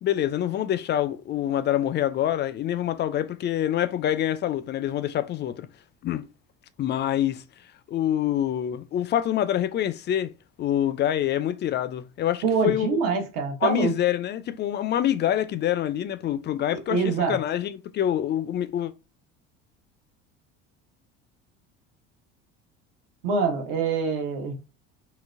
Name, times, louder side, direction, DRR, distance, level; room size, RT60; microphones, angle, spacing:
voice 1, 0.0-5.7 6.0-6.3 6.8-7.4 7.9-10.3 10.6-13.0 13.6-18.9, left 11 dB, 35° left, 0.4 m, -26 dB
voice 2, 12.4-13.9 16.9-17.4 23.2-24.5, right 5 dB, 65° right, 1.0 m, -25 dB
3.8 x 2.1 x 2.5 m
hypercardioid pair, 80°, 34 cm